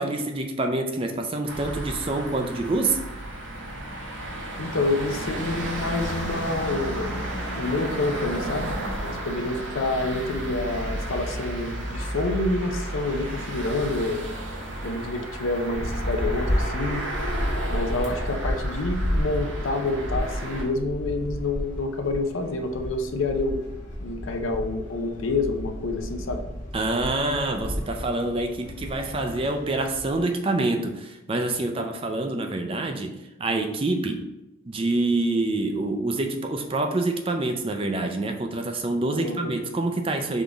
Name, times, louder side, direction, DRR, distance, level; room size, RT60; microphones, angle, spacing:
voice 1, 0.0-3.0 26.7-34.2 34.6-40.4, right 2 dB, 25° right, 5 dB, 0.4 m, -26 dB
sound 1, 1.5-20.6, right 1 dB, 70° right, 1.1 m, -33 dB
voice 2, 4.6-7.1 7.6-8.7 9.0-14.2 14.8-17.0 17.7-23.6 24.0-26.4 39.1-39.7, left 2 dB, 75° left, 5 dB, 0.6 m, -28 dB
sound 2, 15.7-30.2, equal, 35° left, 1.2 m, -32 dB
3.7 x 3.5 x 3.9 m, 0.92 s
head